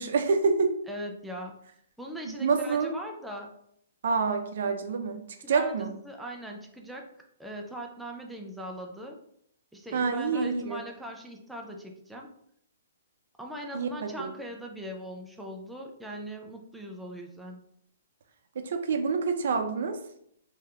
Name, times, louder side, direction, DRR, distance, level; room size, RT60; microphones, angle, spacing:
voice 1, 0.0-0.7 2.3-2.9 4.0-5.2 5.5-5.9 9.9-10.8 13.7-14.3 18.6-20.0, right 4 dB, 60° right, 6 dB, 0.5 m, -27 dB
voice 2, 0.9-1.6 2.0-3.5 5.4-5.7 6.0-7.1 7.4-9.2 9.7-12.3 13.4-17.6, right 1 dB, 5° right, 1 dB, 0.3 m, -40 dB
3.4 x 2.7 x 2.3 m, 0.70 s
hypercardioid pair, 155°, 0 cm